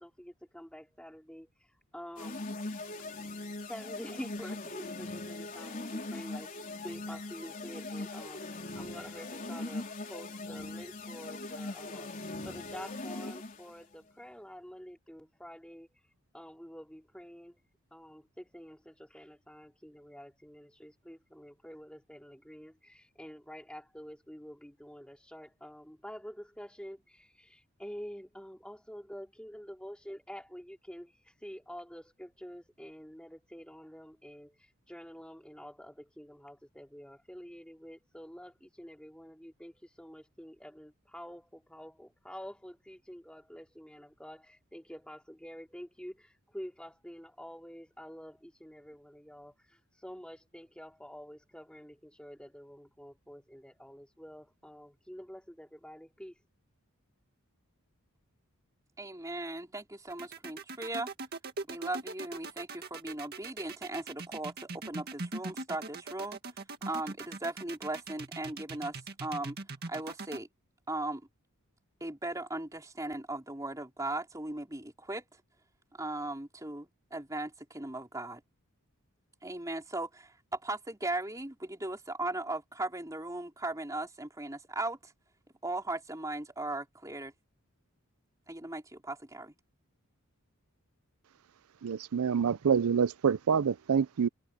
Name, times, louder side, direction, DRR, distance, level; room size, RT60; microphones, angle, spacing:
voice 1, 0.0-1.5 1.9-2.4 3.7-12.1 12.4-16.0 16.3-17.6 17.9-56.4, equal, 5° left, 4.1 m, -48 dB
sound 1, 2.2-13.7, left 2 dB, 40° left, 3.8 m, -40 dB
voice 2, 59.0-61.1 61.7-66.4 66.9-69.6 69.9-70.5 70.9-71.2 72.0-75.2 76.0-78.4 79.4-85.1 85.6-87.3 88.5-89.5, right 2 dB, 15° right, 3.7 m, -38 dB
sound 2, 60.1-70.4, right 3 dB, 45° right, 2.0 m, -41 dB
voice 3, 91.8-94.3, right 7 dB, 75° right, 0.5 m, -27 dB
head